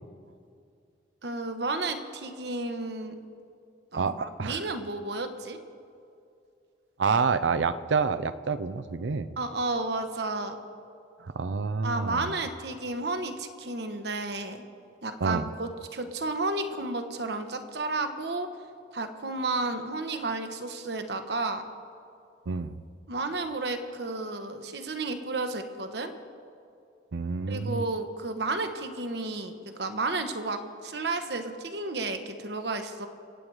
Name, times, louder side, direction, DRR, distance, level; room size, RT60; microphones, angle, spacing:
voice 1, 1.2-3.1 3.9-5.6 9.4-10.6 11.8-14.6 15.0-18.5 18.9-21.6 23.1-26.1 27.5-33.1, right 3 dB, 60° right, 7 dB, 1.2 m, -32 dB
voice 2, 4.0-4.6 7.0-9.3 11.2-12.3 15.2-15.5 22.5-22.8 27.1-27.8, right 5 dB, 85° right, 13 dB, 0.6 m, -28 dB
25.5 x 9.0 x 4.8 m, 2.4 s
head